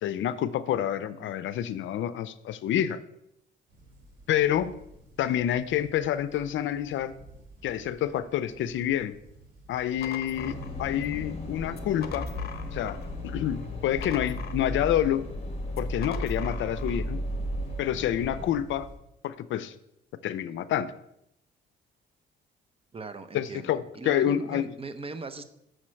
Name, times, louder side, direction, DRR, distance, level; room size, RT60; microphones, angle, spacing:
voice 1, 0.0-3.0 4.3-4.7 5.2-7.1 7.6-9.2 9.7-12.3 12.7-13.0 13.2-15.2 15.8-17.2 17.8-18.9 19.2-19.7 20.2-20.9 23.3-24.7, left 11 dB, 75° left, 15 dB, 0.5 m, -28 dB
sound 1, 3.7-19.0, right 2 dB, 50° right, 3.1 m, -49 dB
sound 2, 10.0-11.2 11.7-13.2 13.5-15.0 15.7-17.1, left 8 dB, 50° left, 0.9 m, -43 dB
sound 3, 10.3-18.5, left 1 dB, 30° left, 1.6 m, -35 dB
voice 2, 22.9-25.4, right 3 dB, 30° right, 10 dB, 0.7 m, -39 dB
6.3 x 4.3 x 6.3 m, 0.79 s
cardioid pair, 90°, 20 cm